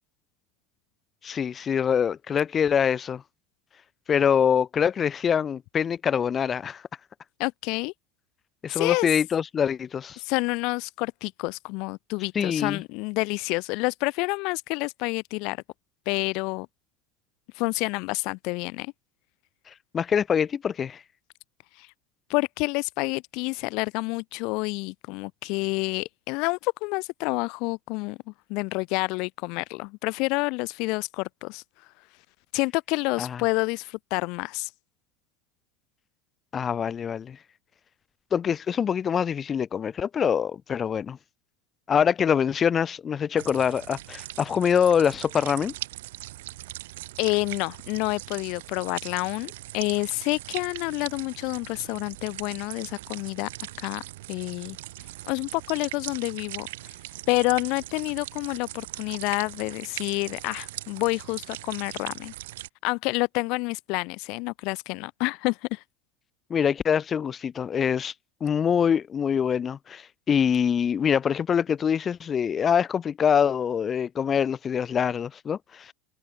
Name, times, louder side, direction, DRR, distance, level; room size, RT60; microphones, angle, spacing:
voice 1, 1.2-3.2 4.1-6.8 8.6-10.2 12.3-12.8 19.9-21.0 33.2-33.4 36.5-37.4 38.3-41.2 41.9-45.7 66.5-68.1 68.4-75.9, left 7 dB, 20° left, 1.4 m, -24 dB
voice 2, 7.4-7.9 8.7-9.1 10.2-15.6 16.1-16.7 17.5-18.9 21.8-21.9 22.3-28.2 28.5-31.6 32.5-34.7 47.2-53.5 53.8-54.0 54.3-54.8 55.3-56.9 57.3-62.3 62.8-65.8, left 27 dB, 55° left, 1.2 m, -28 dB
sound 1, 43.4-62.7, right 17 dB, 90° right, 2.5 m, -40 dB
supercardioid pair, 155°, 0 cm